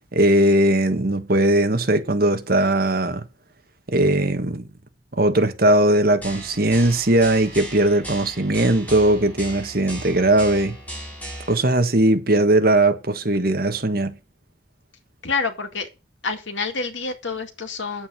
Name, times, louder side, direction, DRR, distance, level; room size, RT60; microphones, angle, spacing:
voice 1, 0.1-3.2 3.9-4.7 5.2-10.8 11.5-14.1, right 1 dB, 55° right, 1.6 m, -19 dB
sound 1, 6.2-11.5, right 1 dB, 10° left, 5.9 m, -37 dB
voice 2, 15.2-15.9 16.2-18.1, left 4 dB, 85° left, 2.2 m, -27 dB
9.5 x 8.3 x 6.3 m
head